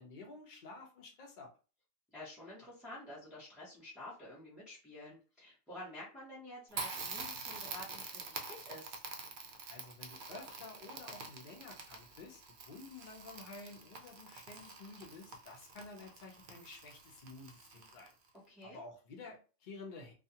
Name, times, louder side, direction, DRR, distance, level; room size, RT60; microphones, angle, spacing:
voice 1, 0.0-1.5 9.7-18.1 18.6-20.1, left 3 dB, 45° left, 0 dB, 0.8 m, -51 dB
voice 2, 2.1-9.0 18.5-18.8, left 1 dB, ahead, -7 dB, 0.7 m, -50 dB
Crackle, 6.7-18.3, right 4 dB, 55° right, 0.6 m, -46 dB
2.4 x 2.3 x 2.8 m, 0.35 s
omnidirectional pair, 1.3 m